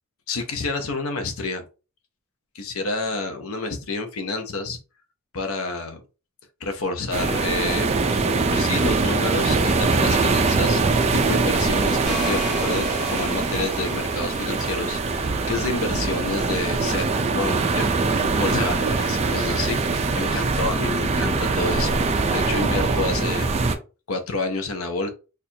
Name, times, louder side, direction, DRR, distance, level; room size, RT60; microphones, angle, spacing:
voice 1, 0.3-1.6 2.5-4.8 5.3-6.0 6.6-8.2 8.5-17.9 18.4-22.0 22.3-23.7 24.1-25.1, left 3 dB, 75° left, 6 dB, 0.6 m, -29 dB
sound 1, 7.1-23.7, right 3 dB, 30° right, 0.4 m, -22 dB
sound 2, 12.1-14.9, left 2 dB, 35° left, 1.4 m, -36 dB
4.3 x 2.5 x 2.7 m, 0.32 s
head